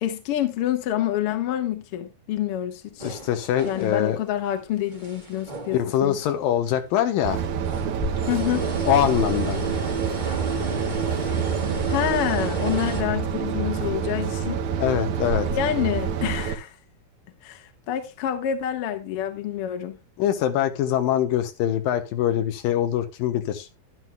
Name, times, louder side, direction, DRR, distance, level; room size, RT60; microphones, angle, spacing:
voice 1, 0.0-3.1 3.6-6.2 8.3-8.7 11.9-14.6 15.5-16.7 17.4-20.0, left 11 dB, 55° left, 1.8 m, -27 dB
voice 2, 3.0-4.2 5.7-7.4 8.9-9.6 14.8-15.5 20.2-23.7, left 11 dB, 80° left, 2.6 m, -23 dB
sound 1, 3.0-4.2 4.6-6.3 6.6-6.7 7.5-13.0, right 3 dB, 25° right, 1.0 m, -32 dB
sound 2, 7.2-16.5, right 7 dB, 65° right, 2.2 m, -27 dB
12.0 x 11.0 x 2.3 m
omnidirectional pair, 4.2 m